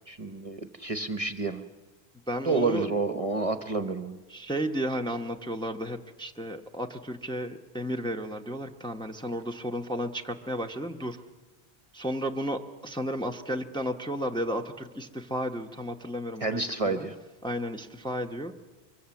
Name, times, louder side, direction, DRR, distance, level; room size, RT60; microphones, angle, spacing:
voice 1, 0.1-1.6 2.4-4.2 16.4-17.2, right 3 dB, 35° right, 9 dB, 0.9 m, -29 dB
voice 2, 2.3-2.9 4.3-11.2 11.9-16.6 16.8-17.1 17.4-18.5, equal, 5° left, 4 dB, 0.9 m, -33 dB
23.5 x 23.0 x 7.2 m, 1.2 s
omnidirectional pair, 1.1 m